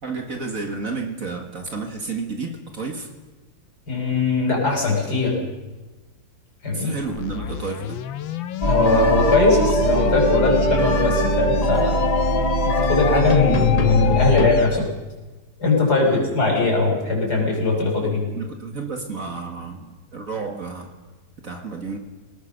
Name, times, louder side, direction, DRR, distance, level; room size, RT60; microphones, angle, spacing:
voice 1, 0.0-3.1 6.7-8.0 16.0-16.3 18.3-20.9 21.4-22.0, right 4 dB, 45° right, 4 dB, 2.2 m, -31 dB
voice 2, 3.9-5.4 6.6-6.9 8.6-12.1 12.6-14.9 15.6-18.2, left 3 dB, 55° left, -1 dB, 6.1 m, -20 dB
sound 1, 7.0-14.8, left 9 dB, 80° left, 1.6 m, -31 dB
sound 2, 8.6-14.5, left 1 dB, 20° left, 1.3 m, -20 dB
24.5 x 18.5 x 6.7 m, 1.2 s
omnidirectional pair, 2.1 m